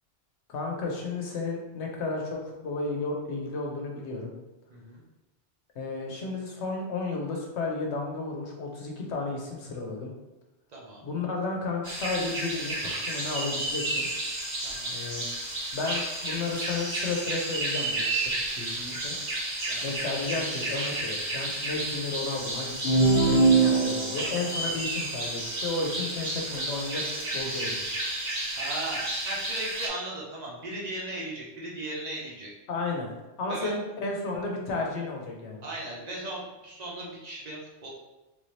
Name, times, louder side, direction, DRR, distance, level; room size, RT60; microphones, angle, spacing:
voice 1, 0.5-4.3 5.8-10.1 11.0-14.1 14.9-15.3 15.7-18.1 18.3-19.2 19.8-27.0 27.3-27.8 32.7-33.1 33.4-35.6, left 3 dB, 70° left, 0 dB, 1.0 m, -33 dB
voice 2, 4.7-5.0 10.7-11.1 14.6-15.0 19.7-19.9 24.6-24.8 28.5-32.5 33.5-33.7 35.6-37.9, right 2 dB, 40° right, -4 dB, 0.9 m, -37 dB
sound 1, 11.8-29.9, right 2 dB, 75° right, 1.8 m, -32 dB
sound 2, 22.8-24.4, right 3 dB, 55° left, 0.6 m, -21 dB
3.4 x 2.7 x 3.2 m, 1.1 s
omnidirectional pair, 1.2 m